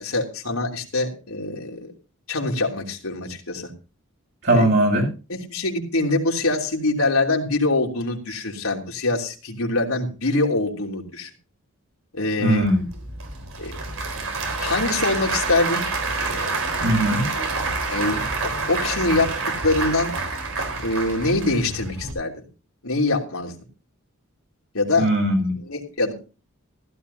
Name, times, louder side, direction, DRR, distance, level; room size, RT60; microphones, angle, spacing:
voice 1, 0.0-1.9 2.3-3.7 4.5-4.7 5.3-11.3 12.1-12.7 13.6-13.7 14.6-15.8 17.9-18.2 18.7-19.4 19.6-20.1 20.8-22.3 22.8-23.5 24.7-25.1 25.7-26.1, left 2 dB, 80° left, 3.3 m, -24 dB
voice 2, 4.4-5.1 12.4-12.8 16.8-17.3 25.0-25.5, right 1 dB, 55° right, 7.4 m, -19 dB
Applause / Crowd, 12.5-22.1, right 3 dB, 75° right, 4.1 m, -28 dB
15.5 x 15.0 x 2.8 m
head